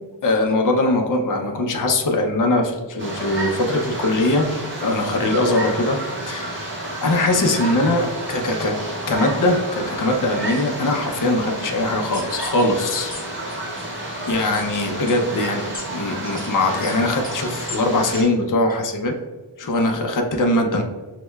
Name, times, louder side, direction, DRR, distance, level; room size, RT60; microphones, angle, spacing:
voice 1, 0.2-4.5 4.8-6.0 6.2-6.7 7.0-8.8 9.1-13.1 14.3-19.1 19.6-20.8, left 2 dB, 45° left, 3 dB, 0.5 m, -21 dB
sound 1, 3.0-18.2, right 1 dB, 25° right, 1.3 m, -30 dB
sound 2, 12.1-12.6 13.1-13.2 13.5-13.8 14.5-14.6 15.1-15.2 15.7-15.8 16.4-16.5 16.8-17.0 17.2-17.4 17.7-17.8 18.1-18.2 18.7-18.8, left 2 dB, 20° left, 1.0 m, -35 dB
6.2 x 2.2 x 2.2 m, 1.3 s
wide cardioid pair, 70°, 44 cm